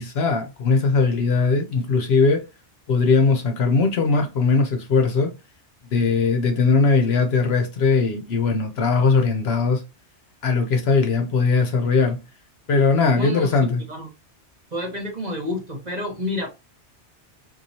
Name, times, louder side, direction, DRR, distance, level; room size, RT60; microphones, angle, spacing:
voice 1, 0.0-2.4 2.9-5.3 5.9-9.8 10.4-12.2 12.7-13.8, left 4 dB, 65° left, 0.9 m, -20 dB
voice 2, 13.2-14.1 14.7-16.5, left 1 dB, 40° right, 1.1 m, -29 dB
4.6 x 2.4 x 2.7 m
omnidirectional pair, 1.2 m